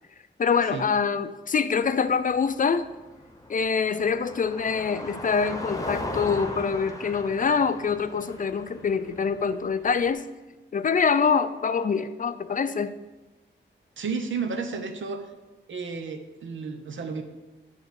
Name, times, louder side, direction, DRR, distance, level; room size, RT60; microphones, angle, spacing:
voice 1, 0.4-2.9 3.5-10.2 10.7-12.9, left 5 dB, 45° left, 12 dB, 0.4 m, -25 dB
Car passing by, 1.8-10.1, left 1 dB, 15° left, 0.9 m, -38 dB
voice 2, 14.0-15.3 15.7-17.2, right 5 dB, 80° right, 6 dB, 0.9 m, -32 dB
9.9 x 3.5 x 6.4 m, 1.1 s
wide cardioid pair, 120°, 20 cm